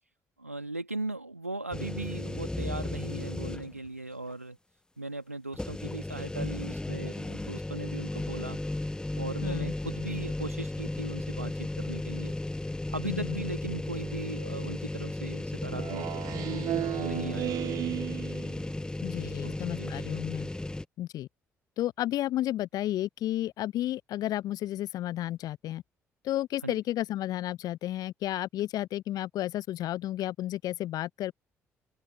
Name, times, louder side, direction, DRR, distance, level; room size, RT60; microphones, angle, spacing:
voice 1, 0.4-4.6 5.0-8.6 9.2-12.3 12.9-18.0 19.4-19.9 26.6-26.8, right 2 dB, 90° right, 2.3 m, -38 dB
sound 1, 1.7-3.9 4.3-4.4 5.5-20.8, left 2 dB, 10° left, 1.0 m, -35 dB
voice 2, 9.4-9.7 13.0-13.4 19.0-20.5 21.0-21.3 21.8-25.8 26.2-31.3, left 14 dB, 55° left, 0.8 m, -32 dB
Speech synthesizer, 15.7-18.7, right 13 dB, 55° right, 2.3 m, -34 dB
figure-of-eight pair, 45°, 8 cm